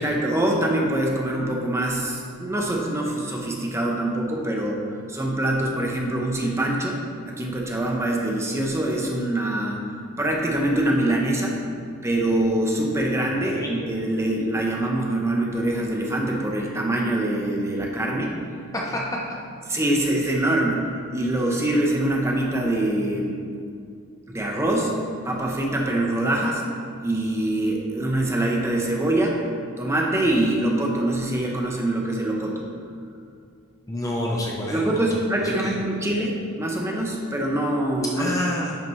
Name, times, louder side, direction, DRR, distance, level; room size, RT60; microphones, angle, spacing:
voice 1, 0.0-7.0 7.2-9.9 10.2-11.6 12.0-18.4 19.7-23.4 24.3-24.9 25.2-26.6 27.0-29.4 29.8-32.7 34.7-38.3, right 1 dB, 15° right, -1 dB, 0.8 m, -24 dB
voice 2, 33.9-35.0 35.4-35.8 38.2-38.8, left 1 dB, 15° left, -2 dB, 0.6 m, -28 dB
10.5 x 5.7 x 3.2 m, 2.3 s
head